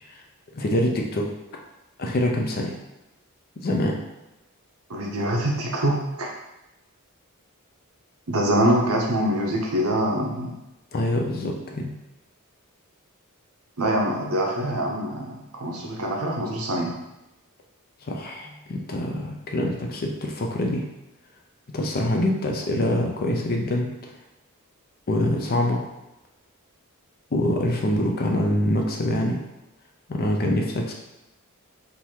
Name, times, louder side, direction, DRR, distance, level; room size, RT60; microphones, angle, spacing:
voice 1, 0.5-1.3 2.0-2.8 3.6-4.0 10.9-11.9 18.0-20.8 21.7-24.1 25.1-25.9 27.3-29.4 30.1-30.9, left 1 dB, 45° left, 1 dB, 0.6 m, -25 dB
voice 2, 4.9-6.3 8.3-10.6 13.8-16.9, right 1 dB, 85° right, -1 dB, 0.9 m, -24 dB
3.8 x 2.8 x 4.5 m, 0.95 s
head